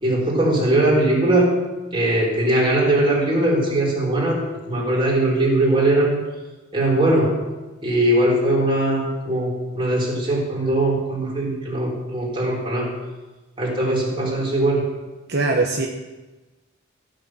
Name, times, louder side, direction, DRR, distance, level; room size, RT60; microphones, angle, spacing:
voice 1, 0.0-1.5 1.9-4.4 4.7-6.2 6.7-7.4 7.8-12.9 13.6-14.9, right 1 dB, 25° right, -4 dB, 4.1 m, -20 dB
voice 2, 15.3-15.9, right 3 dB, 55° right, 0 dB, 1.1 m, -21 dB
15.0 x 6.6 x 7.6 m, 1.1 s
head